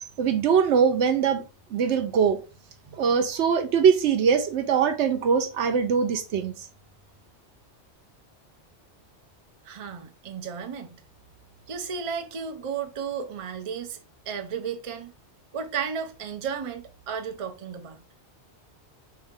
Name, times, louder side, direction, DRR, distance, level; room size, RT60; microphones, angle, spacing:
voice 1, 0.2-1.4 1.7-2.4 3.0-6.5, right 6 dB, 80° right, 1.0 m, -22 dB
voice 2, 9.7-11.0 11.7-14.0 14.3-15.1 15.5-18.0, right 6 dB, 40° right, 0.5 m, -33 dB
4.4 x 2.8 x 3.6 m
omnidirectional pair, 1.2 m